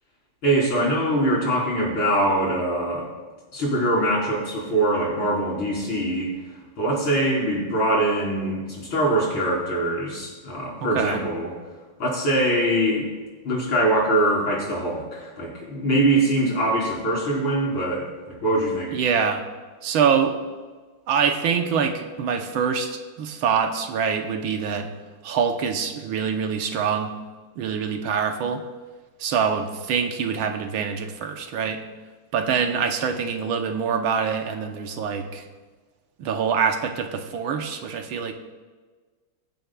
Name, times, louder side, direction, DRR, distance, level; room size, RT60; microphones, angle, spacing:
voice 1, 0.4-3.1 3.5-6.3 6.8-11.5 12.0-13.1 13.4-18.1 18.4-18.9, right 1 dB, 75° left, -5 dB, 4.7 m, -23 dB
voice 2, 10.8-11.2 18.9-19.4 19.8-20.4 21.1-24.9 25.2-27.1 27.6-28.6 29.2-31.8 32.3-35.4 36.2-38.3, right 6 dB, 75° right, 5 dB, 1.6 m, -25 dB
22.5 x 8.1 x 2.3 m, 1.4 s
omnidirectional pair, 2.3 m